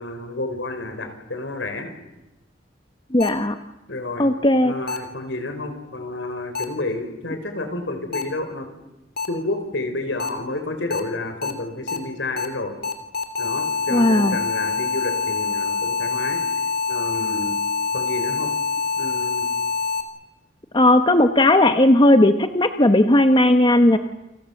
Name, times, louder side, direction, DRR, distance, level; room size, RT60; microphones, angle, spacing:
voice 1, 0.0-1.9 3.9-4.3 4.6-8.7 9.3-12.8 13.4-16.4 16.9-17.6 17.9-18.5 19.0-19.5, left 2 dB, 70° left, 7 dB, 5.0 m, -30 dB
voice 2, 3.1-3.6 4.2-4.7 13.9-14.4 20.7-24.0, left 1 dB, 25° left, 8 dB, 1.1 m, -16 dB
sound 1, 3.2-3.3 4.9-5.0 6.5-6.6 8.1-8.2 9.2-9.3 10.2-10.3 10.9-11.0 11.4-11.5 11.9-12.0 12.4-12.5 12.8-20.0, left 4 dB, 55° left, 2.9 m, -25 dB
29.5 x 25.5 x 7.3 m, 0.98 s
head